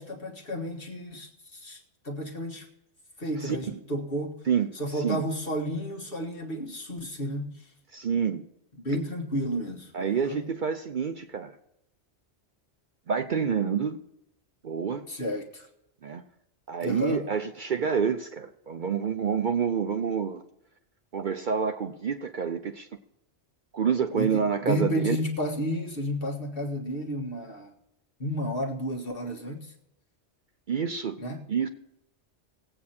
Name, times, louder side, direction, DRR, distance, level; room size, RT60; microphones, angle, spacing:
voice 1, 0.0-2.7 3.2-4.4 4.7-7.7 8.8-10.4 15.1-15.7 16.8-17.2 24.1-27.7 28.2-29.7 31.2-31.4, equal, 55° left, 1.8 m, -32 dB
voice 2, 3.4-3.8 4.5-5.2 7.9-8.4 9.9-11.6 13.1-14.0 14.6-15.1 16.0-16.2 16.7-20.4 21.1-22.9 23.7-25.2 30.7-31.2 31.5-31.7, right 6 dB, 50° right, 0.7 m, -28 dB
19.0 x 8.5 x 4.3 m
omnidirectional pair, 1.1 m